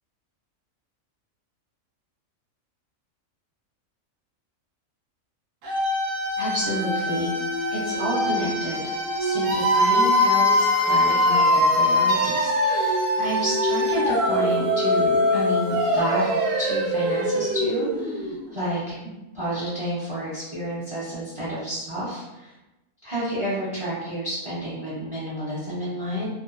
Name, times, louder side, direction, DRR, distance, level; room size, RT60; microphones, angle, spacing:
sound 1, 5.6-18.5, left 1 dB, 70° right, 0.9 m, -22 dB
voice 1, 6.4-7.3 7.7-8.9 9.2-16.2 16.6-22.5 23.0-26.3, equal, 35° right, -10 dB, 0.5 m, -30 dB
2.6 x 2.2 x 2.4 m, 1.0 s
omnidirectional pair, 1.4 m